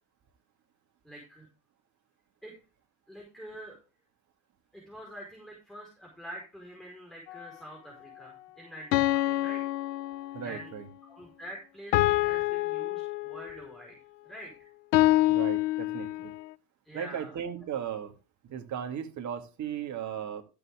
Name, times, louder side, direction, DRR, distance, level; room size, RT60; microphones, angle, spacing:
voice 1, 1.0-1.5 2.4-2.5 3.1-3.8 4.7-9.6 10.4-10.7 11.1-14.0 14.2-14.7 16.8-17.3, right 1 dB, ahead, -1 dB, 4.7 m, -46 dB
sound 1, 7.3-7.4 8.9-10.6 11.9-13.6 14.9-16.4, left 17 dB, 75° left, 0.6 m, -27 dB
voice 2, 10.3-10.9 15.3-16.3 16.9-18.1 18.4-20.4, right 9 dB, 50° right, 6 dB, 2.3 m, -36 dB
13.5 x 7.2 x 3.6 m, 0.32 s
hypercardioid pair, 80°, 38 cm